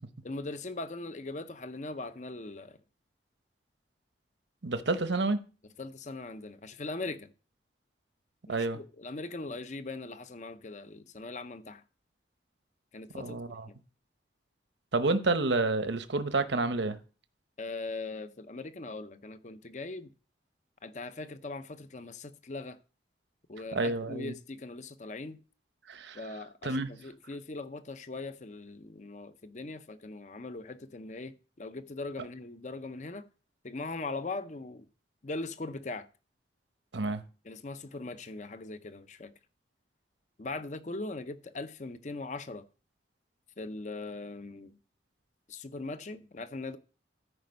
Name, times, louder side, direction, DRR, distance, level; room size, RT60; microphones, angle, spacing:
voice 1, 0.2-2.8 5.8-7.3 8.5-11.8 12.9-13.4 13.7-13.8 17.6-20.1 20.8-22.8 23.5-25.4 26.1-33.2 33.6-34.8 35.2-36.1 37.4-39.3 40.4-42.6 43.6-44.8 45.5-46.8, left 3 dB, 40° left, 0.6 m, -40 dB
voice 2, 4.6-5.4 8.5-8.8 13.2-13.6 14.9-17.0 23.7-24.3 25.9-26.2 26.6-26.9 36.9-37.2, right 3 dB, 75° right, 0.9 m, -29 dB
13.5 x 5.2 x 5.2 m
head